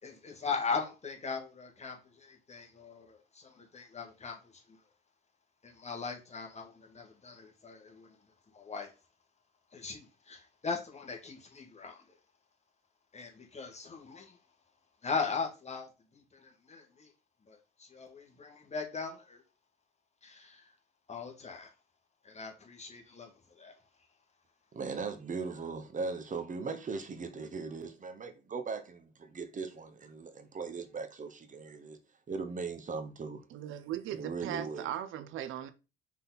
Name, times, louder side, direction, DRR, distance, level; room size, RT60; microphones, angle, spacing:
voice 1, 0.0-4.6 5.6-8.1 8.5-8.9 9.7-12.0 13.1-14.4 15.0-17.1 17.5-19.4 20.2-20.7 21.1-21.7 22.2-23.3 23.6-23.7, left 5 dB, 35° left, 2.1 m, -39 dB
voice 2, 24.7-32.0 32.3-33.4 34.1-34.8, right 4 dB, 40° right, 1.1 m, -39 dB
voice 3, 33.5-35.7, right 11 dB, 80° right, 0.7 m, -38 dB
5.7 x 4.1 x 4.1 m
cardioid pair, 90°, 20 cm